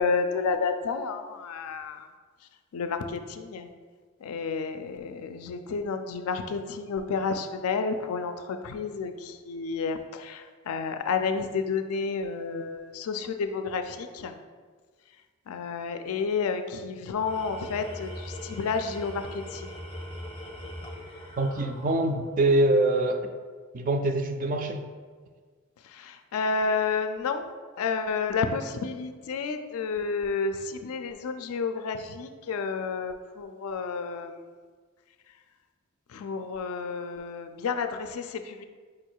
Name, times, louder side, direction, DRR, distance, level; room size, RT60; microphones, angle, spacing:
voice 1, 0.0-2.1 2.7-3.7 4.2-14.3 15.5-19.7 25.9-27.5 27.8-34.4 36.1-38.6, left 5 dB, 80° left, 8 dB, 0.4 m, -30 dB
Tools, 17.0-22.4, equal, 20° left, 0.6 m, -41 dB
voice 2, 21.4-23.3 23.7-24.8, right 2 dB, 40° right, 6 dB, 0.3 m, -24 dB
4.9 x 2.3 x 4.5 m, 1.5 s
head